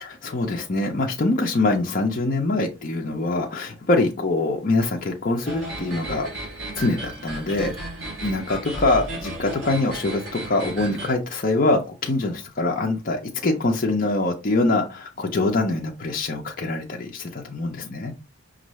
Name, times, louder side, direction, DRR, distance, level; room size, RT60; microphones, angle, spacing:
voice 1, 0.0-6.3 6.7-7.7 8.2-18.1, left 2 dB, 40° left, 1 dB, 0.5 m, -24 dB
sound 1, 5.4-11.1, right 1 dB, 60° right, 2.6 m, -34 dB
5.3 x 2.5 x 3.1 m, 0.29 s
head